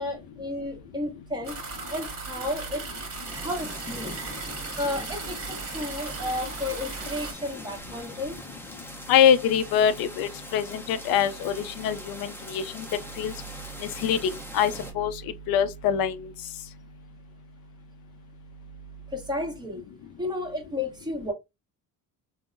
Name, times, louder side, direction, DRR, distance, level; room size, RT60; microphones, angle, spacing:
voice 1, 0.0-1.5 1.9-2.8 3.4-4.1 4.8-8.4 19.1-19.8 20.2-21.3, left 1 dB, 10° right, 1.0 m, -32 dB
sound 1, 1.4-7.3, right 4 dB, 40° right, 1.3 m, -37 dB
sound 2, 3.2-14.9, equal, 5° left, 0.6 m, -42 dB
voice 2, 9.1-12.9 13.2-13.3 13.8-15.2 15.5-16.2, left 8 dB, 70° left, 0.5 m, -24 dB
3.6 x 2.0 x 2.5 m
cardioid pair, 120°, 37 cm